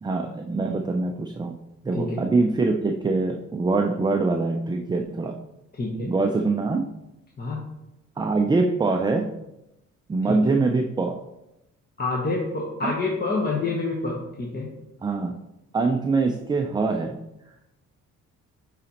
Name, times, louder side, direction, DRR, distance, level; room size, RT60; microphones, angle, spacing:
voice 1, 0.0-5.4 6.1-6.8 8.2-9.4 10.1-11.2 12.8-12.9 15.0-15.4 15.7-17.2, right 3 dB, 15° right, 4 dB, 0.4 m, -24 dB
voice 2, 5.8-6.1 7.4-7.6 10.3-10.4 12.0-14.7, left 3 dB, 30° left, -2 dB, 1.1 m, -27 dB
8.8 x 4.1 x 2.9 m, 0.90 s
cardioid pair, 90°, 30 cm